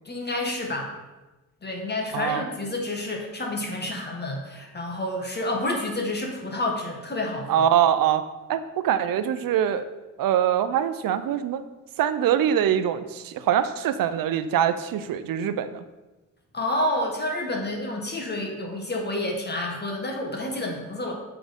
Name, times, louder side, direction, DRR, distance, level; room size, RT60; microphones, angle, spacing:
voice 1, 0.0-0.9 1.6-7.7 16.5-21.1, left 1 dB, 30° left, 1 dB, 1.3 m, -29 dB
voice 2, 2.1-2.4 7.5-8.2 8.5-9.8 10.2-11.6 12.0-15.8, right 9 dB, 85° right, 12 dB, 0.5 m, -23 dB
6.1 x 3.8 x 5.0 m, 1.1 s
cardioid pair, 95°, 33 cm